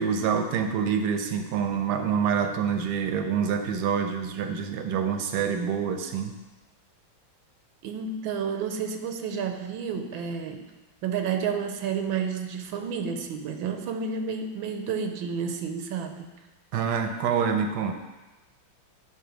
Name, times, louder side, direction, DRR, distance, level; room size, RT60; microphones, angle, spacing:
voice 1, 0.0-6.3 16.7-17.9, right 7 dB, 65° right, 6 dB, 1.2 m, -26 dB
voice 2, 7.8-10.7 11.0-16.3, right 6 dB, 80° right, 6 dB, 1.5 m, -30 dB
9.8 x 4.0 x 5.0 m, 1.1 s
omnidirectional pair, 2.2 m